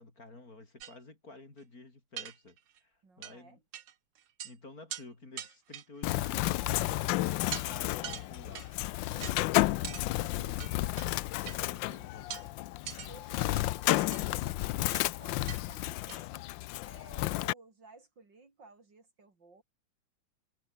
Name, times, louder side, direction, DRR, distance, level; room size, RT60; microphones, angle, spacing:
voice 1, 0.0-3.6 4.4-12.5, left 2 dB, 40° left, 4.8 m, -52 dB
sound 1, 0.8-1.0 1.6-1.7 2.2-2.8 3.2-3.3 3.7-3.9 4.2-4.5 4.9-5.0 5.4-6.1 6.7-7.0 7.5-7.7 8.0-8.7 9.2-9.4 9.8-10.1 10.6-11.1 11.5-11.6 12.3-12.5 12.8-13.1 13.5-14.2 14.9-15.1 15.5-15.6 15.9-16.2, right 10 dB, 85° right, 2.3 m, -42 dB
voice 2, 3.0-3.6 13.0-16.5 16.8-19.6, right 3 dB, 55° right, 4.4 m, -56 dB
Bird, 6.0-17.5, left 17 dB, 75° left, 1.1 m, -32 dB
omnidirectional pair, 2.4 m